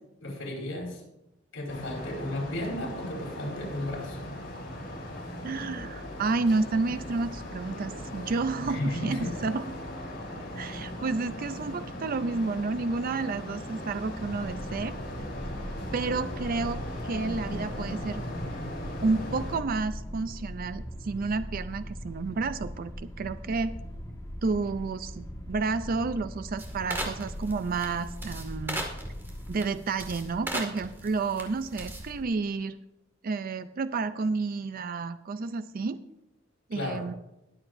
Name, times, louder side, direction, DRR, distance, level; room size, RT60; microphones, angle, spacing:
voice 1, 0.2-1.0 1.5-4.2 8.6-9.4 10.3-10.7 36.7-37.1, left 1 dB, 80° left, -2 dB, 4.7 m, -34 dB
sound 1, 1.7-19.6, left 1 dB, 55° left, 3.8 m, -38 dB
voice 2, 5.4-9.6 10.6-15.0 15.9-18.2 19.0-23.7 24.4-28.8 29.5-32.8 33.2-36.0 36.7-37.1, right 4 dB, 45° right, 12 dB, 0.4 m, -30 dB
sound 2, 14.1-29.6, equal, 15° left, 1.6 m, -40 dB
sound 3, 26.6-32.2, right 1 dB, 10° right, 2.0 m, -38 dB
21.5 x 7.8 x 2.6 m, 0.87 s
head